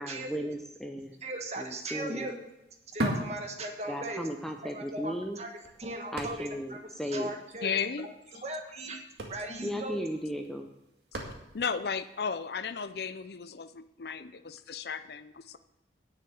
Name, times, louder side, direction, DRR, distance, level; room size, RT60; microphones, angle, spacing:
voice 1, 0.0-1.2 1.5-2.3 3.9-5.4 6.1-7.3 9.6-10.7, equal, ahead, 3 dB, 0.6 m, -36 dB
voice 2, 1.2-2.3 2.9-4.2 4.6-5.5 5.8-6.8 7.1-7.7 8.4-9.0 9.3-10.0, right 1 dB, 35° right, 4 dB, 1.4 m, -38 dB
sound 1, 1.2-1.3 1.6-4.2 4.6-4.7 5.3-6.8 7.1-7.2 7.4-7.7 8.6-8.7 9.0-11.8 12.4-12.5, right 1 dB, 65° right, 1.9 m, -37 dB
voice 3, 7.6-8.1 8.3-8.4 11.5-15.6, left 6 dB, 60° left, 12 dB, 0.5 m, -34 dB
9.9 x 6.8 x 7.8 m, 0.91 s
head